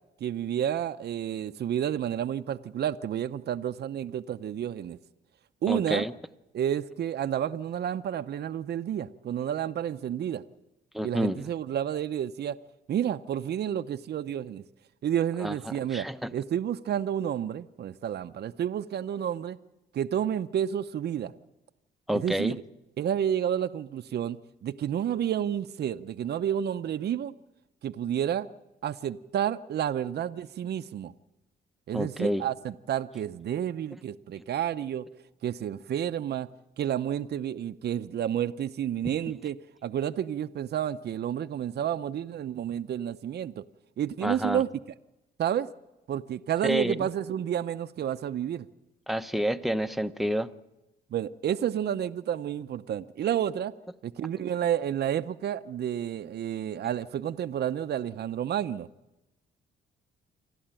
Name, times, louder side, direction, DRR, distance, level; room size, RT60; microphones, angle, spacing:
voice 1, 0.2-5.0 5.6-6.0 6.5-10.4 11.0-12.6 12.9-14.6 15.0-16.1 16.3-19.6 19.9-21.3 22.1-22.6 23.0-27.3 27.8-28.5 28.8-31.1 31.9-35.0 35.4-36.5 36.8-39.6 39.8-43.6 44.0-44.7 45.4-45.7 46.1-48.7 51.1-53.7 54.0-58.9, right 10 dB, 55° right, 9 dB, 0.7 m, -30 dB
voice 2, 5.7-6.1 10.9-11.4 15.4-16.3 22.1-22.6 31.9-32.5 44.2-44.6 46.6-46.9 49.1-50.5, equal, ahead, 9 dB, 0.9 m, -29 dB
27.5 x 12.5 x 9.0 m, 0.99 s
cardioid pair, 90°, 20 cm